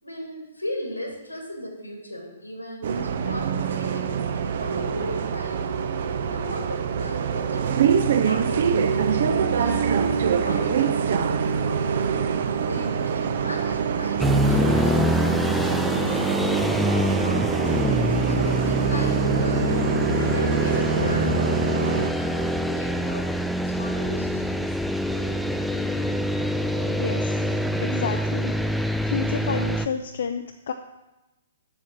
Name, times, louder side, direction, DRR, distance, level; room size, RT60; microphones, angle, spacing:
voice 1, 0.0-5.7 6.3-12.2 12.6-15.6 15.9-17.8 18.3-19.8 20.2-23.3 23.6-24.7, left 1 dB, 85° left, 1 dB, 2.6 m, -37 dB
Bus, 2.8-22.1, right 7 dB, 50° right, 0.7 m, -25 dB
sound 1, 14.2-29.9, equal, ahead, 0.4 m, -25 dB
voice 2, 26.8-27.4 27.8-28.5 29.0-30.7, left 6 dB, 55° left, 7 dB, 0.5 m, -30 dB
7.4 x 7.1 x 7.4 m, 1.0 s
figure-of-eight pair, 120°, 0 cm